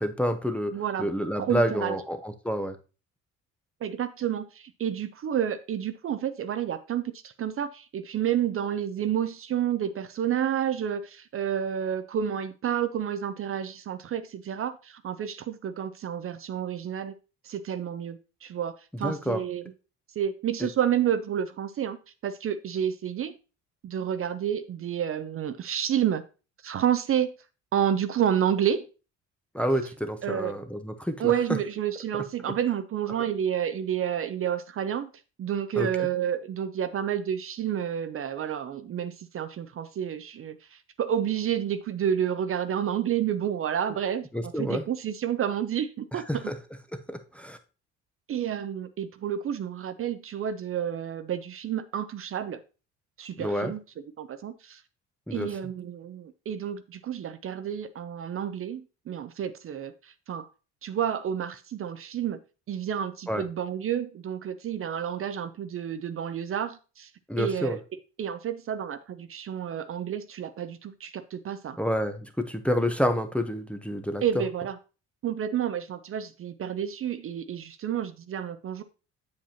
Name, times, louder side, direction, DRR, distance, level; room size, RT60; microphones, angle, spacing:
voice 1, 0.0-0.7 1.0-2.8 19.0-19.4 29.5-31.3 32.1-32.2 35.8-35.9 44.3-44.8 46.1-46.5 47.1-47.6 53.4-53.7 55.3-55.5 63.3-63.4 67.3-67.8 71.8-74.2, equal, 5° left, 6 dB, 0.7 m, -28 dB
voice 2, 0.7-1.1 1.4-2.0 3.8-17.1 17.4-19.6 20.2-22.0 22.2-23.3 23.8-26.2 26.6-27.3 27.7-28.9 30.2-30.5 31.2-35.1 35.4-46.5 48.3-52.6 53.2-53.8 54.2-54.8 55.3-60.5 60.8-62.4 62.7-67.1 67.4-67.8 68.2-71.8 74.2-74.8 75.2-78.8, right 9 dB, 45° right, 11 dB, 0.6 m, -30 dB
7.5 x 7.3 x 2.8 m, 0.33 s
cardioid pair, 105°, 32 cm